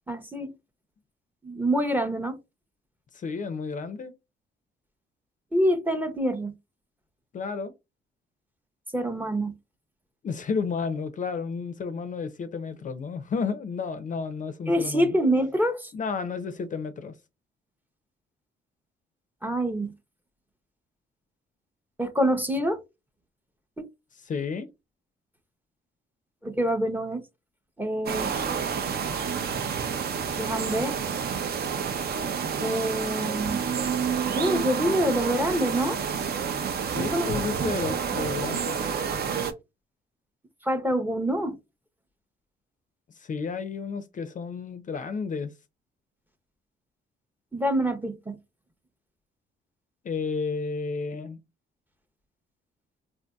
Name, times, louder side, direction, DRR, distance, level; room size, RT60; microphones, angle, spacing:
voice 1, 0.1-0.5 1.4-2.4 5.5-6.5 8.9-9.5 14.7-15.9 19.4-19.9 22.0-22.8 23.8-23.9 26.4-27.2 27.8-28.3 30.4-31.0 32.6-33.6 34.3-36.0 37.0-37.3 37.6-37.8 40.6-41.6 47.5-48.4, equal, 10° right, 0.6 m, -26 dB
voice 2, 3.1-4.1 7.3-7.7 10.2-15.2 15.9-17.1 24.2-24.7 37.0-38.8 43.2-45.5 50.0-51.4, left 5 dB, 40° left, 0.5 m, -32 dB
sound 1, 28.1-39.5, right 7 dB, 50° right, 0.6 m, -29 dB
3.6 x 2.6 x 2.2 m
cardioid pair, 90°, 20 cm